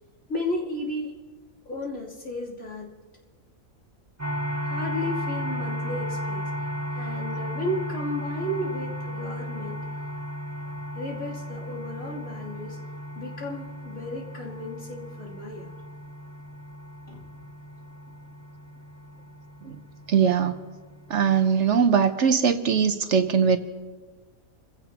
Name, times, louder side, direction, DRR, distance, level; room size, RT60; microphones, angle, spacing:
voice 1, 0.3-1.2 1.6-2.9 4.6-6.5 6.9-9.8 10.9-12.8 13.1-15.7 17.1-17.5, left 1 dB, 75° left, -5 dB, 3.4 m, -34 dB
sound 1, 4.2-21.9, equal, 10° right, 1.4 m, -35 dB
voice 2, 20.1-20.5 21.1-23.6, right 7 dB, 60° right, 9 dB, 1.1 m, -21 dB
28.0 x 16.0 x 2.9 m, 1.4 s
omnidirectional pair, 1.4 m